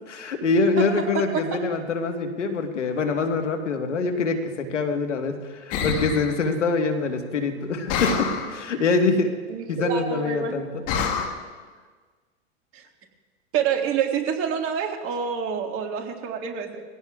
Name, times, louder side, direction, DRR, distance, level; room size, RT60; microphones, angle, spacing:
voice 1, 0.1-9.3 9.7-10.7 11.1-11.2, left 4 dB, 90° left, 5 dB, 1.6 m, -25 dB
voice 2, 0.8-1.6 9.5-10.7 12.7-12.8 13.5-16.8, right 7 dB, 40° right, 3 dB, 1.8 m, -27 dB
sound 1, 5.7-6.4 7.9-8.6 10.9-11.3, left 6 dB, 45° left, 1.6 m, -26 dB
21.5 x 16.0 x 2.4 m, 1.5 s
hypercardioid pair, 110°, 35 cm